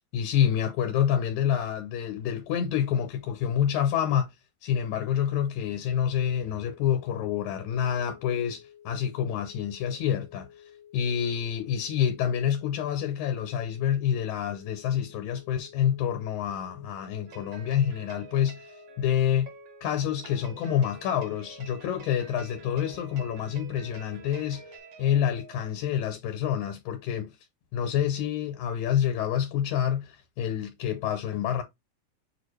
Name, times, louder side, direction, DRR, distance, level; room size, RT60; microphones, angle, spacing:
voice 1, 0.1-4.3 4.6-10.5 10.9-19.5 19.8-24.6 25.0-27.4 27.7-31.6, left 9 dB, 90° left, 2.1 m, -27 dB
sound 1, 5.9-24.8, left 10 dB, 65° left, 1.9 m, -53 dB
sound 2, 17.3-25.7, right 6 dB, 70° right, 1.0 m, -49 dB
6.6 x 2.5 x 3.2 m
omnidirectional pair, 3.3 m